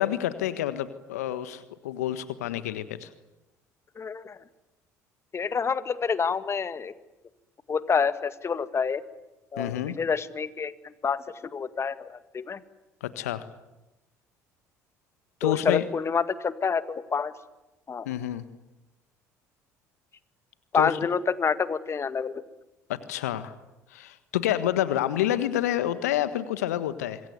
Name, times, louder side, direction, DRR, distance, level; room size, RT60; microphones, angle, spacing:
voice 1, 0.0-3.1 9.6-10.0 13.0-13.5 15.4-15.8 18.0-18.4 20.7-21.0 22.9-23.5 23.9-27.2, left 12 dB, 75° left, 12 dB, 1.5 m, -28 dB
voice 2, 4.0-4.4 5.3-6.9 7.7-9.0 9.5-11.2 11.5-12.6 15.4-17.3 17.9-18.1 20.7-22.4, left 6 dB, 30° left, 12 dB, 1.9 m, -28 dB
26.5 x 22.5 x 9.4 m, 0.99 s
figure-of-eight pair, 60°, 8 cm